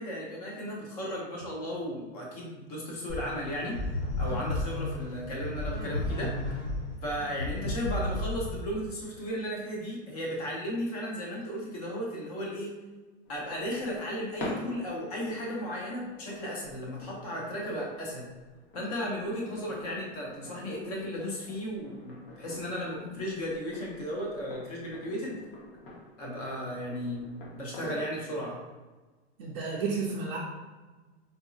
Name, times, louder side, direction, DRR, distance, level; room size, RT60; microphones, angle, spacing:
voice 1, 0.0-3.8 4.2-6.3 7.0-12.7 13.3-18.3 18.7-25.4 26.2-28.6, equal, 35° left, -3 dB, 0.7 m, -35 dB
sound 1, 3.1-8.9, left 1 dB, 85° left, 1.4 m, -33 dB
sound 2, 13.2-28.3, left 2 dB, 55° left, 1.1 m, -47 dB
voice 2, 29.4-30.4, right 4 dB, 35° right, -6 dB, 0.5 m, -31 dB
3.9 x 2.6 x 2.4 m, 1.3 s
supercardioid pair, 170°, 34 cm